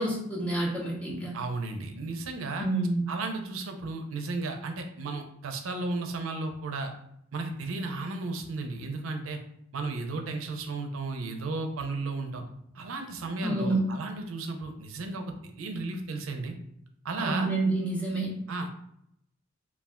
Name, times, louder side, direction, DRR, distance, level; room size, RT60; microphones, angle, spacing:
voice 1, 0.0-1.3 2.6-3.0 13.4-13.8 17.2-18.3, right 2 dB, 5° left, -4 dB, 0.5 m, -28 dB
voice 2, 1.3-2.7 3.1-6.9 7.3-9.4 9.7-12.4 12.7-16.5 17.0-17.5 18.5-18.7, right 3 dB, 90° right, 4 dB, 0.5 m, -34 dB
2.3 x 2.2 x 3.5 m, 0.74 s
head